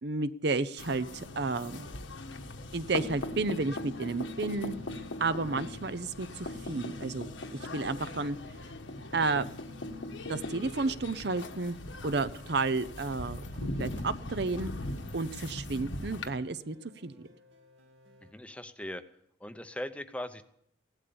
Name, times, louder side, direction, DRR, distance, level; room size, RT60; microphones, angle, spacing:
voice 1, 0.0-1.9 2.7-4.8 5.2-8.4 9.1-9.5 10.3-11.8 12.0-14.7 15.1-17.3, right 3 dB, 55° right, 14 dB, 0.7 m, -32 dB
sound 1, 0.8-16.3, left 2 dB, 75° left, 1.4 m, -40 dB
sound 2, 1.0-18.3, left 1 dB, 80° right, 2.8 m, -61 dB
voice 2, 18.2-19.0 19.4-20.4, left 1 dB, 5° left, 10 dB, 0.7 m, -39 dB
16.5 x 12.5 x 6.9 m, 0.74 s
head